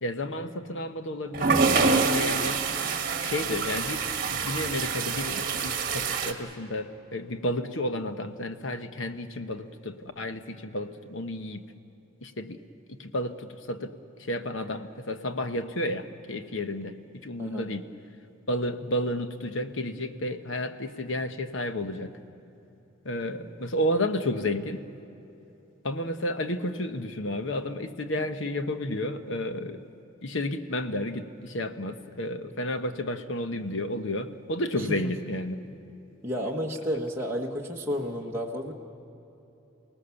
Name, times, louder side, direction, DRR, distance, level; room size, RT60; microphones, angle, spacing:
voice 1, 0.0-2.6 3.2-11.6 12.2-12.6 12.9-17.0 17.2-17.9 18.5-22.1 23.0-24.8 25.8-29.8 30.2-35.6, left 1 dB, 70° left, 9 dB, 1.1 m, -31 dB
sound 1, 1.3-6.3, right 4 dB, 45° right, 1.6 m, -26 dB
voice 2, 36.2-38.7, equal, 10° right, -2 dB, 1.2 m, -31 dB
28.5 x 18.5 x 7.0 m, 3.0 s
head